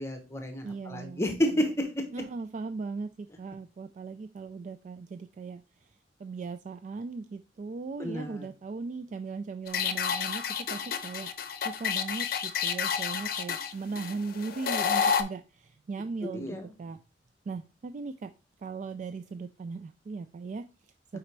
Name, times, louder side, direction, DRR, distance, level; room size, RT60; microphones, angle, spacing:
voice 1, 0.0-2.1 8.0-8.5 16.2-16.7, equal, 15° left, 5 dB, 0.8 m, -30 dB
voice 2, 0.6-1.2 2.1-5.9 6.2-17.0 17.5-18.3 18.6-21.2, right 4 dB, 45° right, 9 dB, 0.3 m, -38 dB
sound 1, 9.7-15.2, left 7 dB, 55° left, 0.6 m, -30 dB
4.9 x 4.2 x 4.5 m, 0.32 s
head